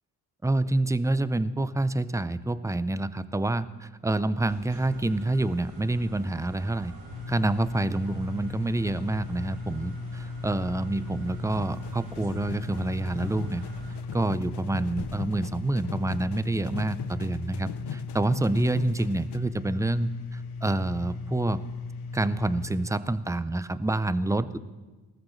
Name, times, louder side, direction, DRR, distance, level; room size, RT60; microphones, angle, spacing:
voice 1, 0.4-6.9 7.3-13.6 14.1-21.6 22.1-24.6, right 2 dB, 5° right, 15 dB, 0.6 m, -27 dB
sound 1, 4.5-14.0, right 1 dB, 60° right, 4.0 m, -47 dB
sound 2, 7.1-22.9, left 3 dB, 75° left, 1.3 m, -37 dB
sound 3, 11.5-19.4, left 10 dB, 55° left, 0.9 m, -41 dB
19.0 x 14.0 x 3.3 m, 1.2 s
hypercardioid pair, 45°, 49 cm